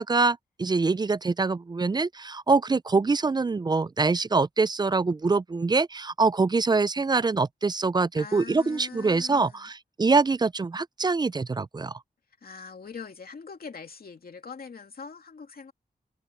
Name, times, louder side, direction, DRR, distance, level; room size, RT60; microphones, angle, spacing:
voice 1, 0.0-12.0, right 4 dB, 25° right, 0.3 m, -24 dB
voice 2, 8.1-9.7 12.4-15.7, left 5 dB, 70° left, 2.5 m, -42 dB
wide cardioid pair, 100°, 16 cm